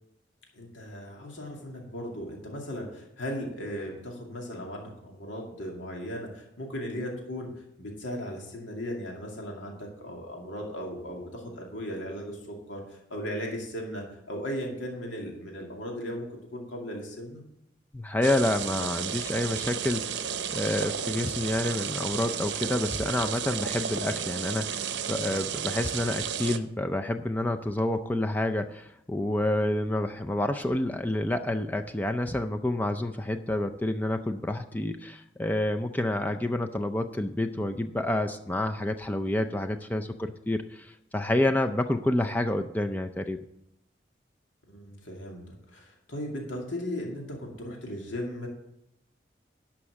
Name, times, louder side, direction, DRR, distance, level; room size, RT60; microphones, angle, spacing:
voice 1, 0.5-7.5 7.8-16.3 16.5-17.4 44.7-48.5, equal, 85° left, 0 dB, 2.4 m, -37 dB
voice 2, 17.9-43.4, left 1 dB, 10° left, 6 dB, 0.4 m, -29 dB
sound 1, 18.2-26.6, right 8 dB, 70° right, 0.7 m, -33 dB
11.5 x 5.9 x 7.3 m, 0.82 s
head